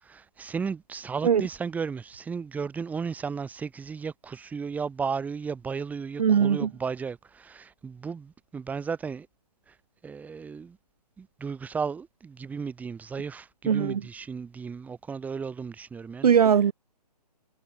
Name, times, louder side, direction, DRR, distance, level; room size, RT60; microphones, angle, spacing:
voice 1, 0.0-9.3 9.7-9.8 10.0-10.8 11.2-16.3, right 5 dB, 5° right, 3.4 m, -34 dB
voice 2, 6.2-6.7 13.7-14.0 16.2-16.7, right 7 dB, 65° right, 0.5 m, -20 dB
figure-of-eight pair, 145°, 21 cm